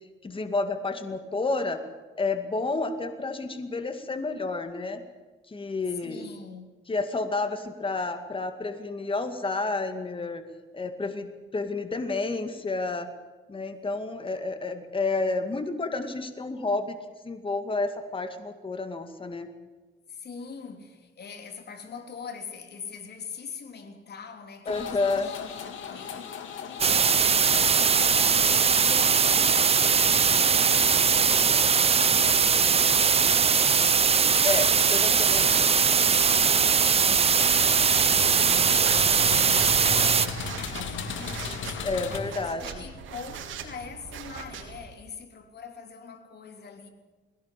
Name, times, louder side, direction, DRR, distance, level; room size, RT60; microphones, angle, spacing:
voice 1, 0.2-1.8 2.2-5.0 5.5-6.3 6.9-10.4 10.7-11.3 11.5-13.1 13.5-17.0 17.2-19.5 24.7-25.3 34.4-35.7 41.8-42.8, left 3 dB, 25° left, 2.2 m, -30 dB
voice 2, 5.9-6.7 20.1-26.5 26.8-28.1 28.7-33.9 34.7-41.8 42.2-46.9, left 5 dB, 55° left, 3.5 m, -43 dB
sound 1, 24.7-42.2, left 6 dB, 75° left, 3.1 m, -38 dB
sound 2, 26.8-40.3, right 6 dB, 30° right, 0.6 m, -21 dB
sound 3, 36.3-44.9, right 7 dB, 80° right, 3.4 m, -42 dB
21.0 x 17.5 x 8.5 m
cardioid pair, 90°, 20 cm